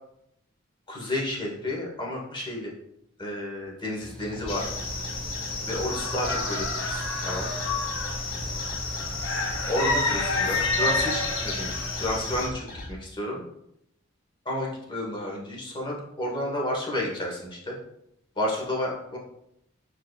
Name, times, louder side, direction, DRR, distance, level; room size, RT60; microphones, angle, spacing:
voice 1, 0.9-2.7 3.2-4.6 5.7-7.5 9.7-13.4 14.4-17.7 18.4-19.2, left 1 dB, 25° left, -2 dB, 1.2 m, -31 dB
Mechanical fan, 4.0-12.5, equal, 5° left, 0.4 m, -41 dB
sound 1, 4.3-12.9, left 2 dB, 45° left, 0.8 m, -41 dB
sound 2, 4.5-12.5, left 3 dB, 75° left, 0.8 m, -29 dB
4.6 x 4.6 x 2.3 m, 0.77 s
head